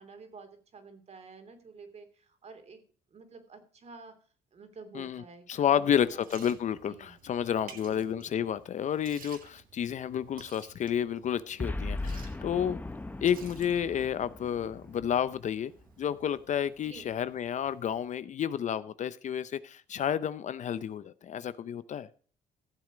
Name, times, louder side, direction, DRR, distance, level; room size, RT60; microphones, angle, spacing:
voice 1, 0.0-2.8 3.1-4.1 4.5-6.5 6.8-7.2 7.6-8.6 12.5-12.8 16.8-17.1, right 4 dB, 40° right, 2.9 m, -50 dB
voice 2, 5.5-12.8 13.2-15.7 16.0-22.1, left 9 dB, 45° left, 0.6 m, -30 dB
Liquid, 5.7-18.1, right 7 dB, 55° right, 1.9 m, -55 dB
Boom, 11.6-16.0, left 2 dB, 10° left, 0.8 m, -38 dB
15.5 x 7.3 x 5.0 m
cardioid pair, 110°, 17 cm